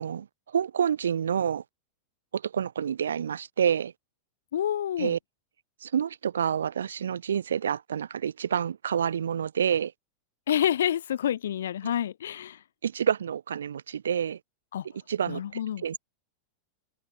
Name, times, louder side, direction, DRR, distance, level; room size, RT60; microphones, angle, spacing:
voice 1, 0.0-1.6 2.3-3.9 5.0-5.2 5.8-9.9 12.8-14.4 15.1-15.4 15.8-16.0, right 8 dB, 65° right, 1.0 m, -28 dB
voice 2, 4.5-5.1 10.5-12.6 14.7-14.9 15.3-15.8, left 10 dB, 65° left, 0.7 m, -28 dB
figure-of-eight pair, 90°, 0 cm